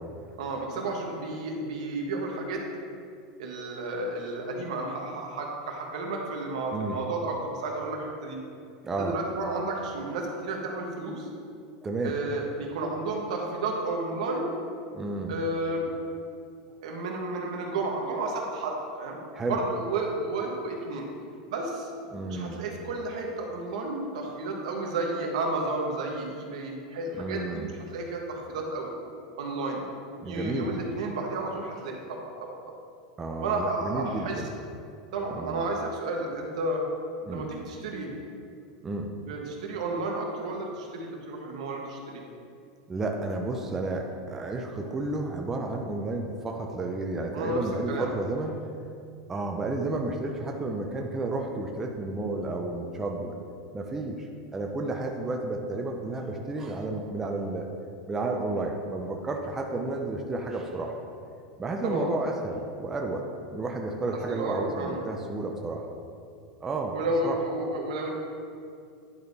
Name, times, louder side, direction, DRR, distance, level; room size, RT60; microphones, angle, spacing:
voice 1, 0.4-2.6 3.4-8.4 9.0-11.3 12.0-14.5 15.3-15.9 16.8-19.2 19.5-21.1 21.5-21.9 22.3-28.9 29.4-29.8 30.3-32.6 33.4-34.4 35.1-36.8 37.3-38.1 39.2-42.2 47.3-47.6 47.9-48.2 61.8-62.1 64.3-65.0 66.9-68.2, right 2 dB, 75° right, 0 dB, 1.2 m, -32 dB
voice 2, 8.8-9.2 11.8-12.1 14.9-15.4 19.3-19.6 22.1-22.6 27.2-27.7 30.2-30.7 33.2-34.5 35.3-35.6 37.3-37.5 38.8-39.1 42.9-48.6 49.3-53.4 53.7-57.7 58.1-60.9 61.6-63.2 63.5-65.8 66.6-66.9 67.2-67.4, right 2 dB, 10° right, 1 dB, 0.4 m, -32 dB
10.0 x 3.6 x 4.0 m, 2.4 s
supercardioid pair, 170°, 4 cm